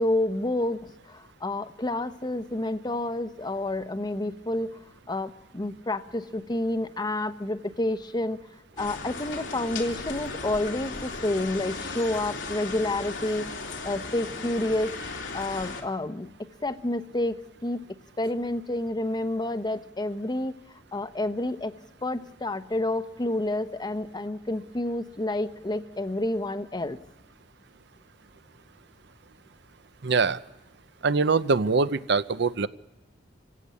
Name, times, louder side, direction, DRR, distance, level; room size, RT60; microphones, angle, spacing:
voice 1, 0.0-4.8 5.1-8.4 8.8-13.5 13.8-14.9 15.3-16.3 16.6-17.8 18.2-21.7 22.0-27.0, left 1 dB, 25° left, 11 dB, 0.8 m, -29 dB
sound 1, 8.8-15.8, left 3 dB, 90° left, 2.6 m, -36 dB
voice 2, 30.0-30.4 31.0-32.7, right 4 dB, 65° right, 14 dB, 0.7 m, -23 dB
28.0 x 16.0 x 8.4 m, 1.1 s
head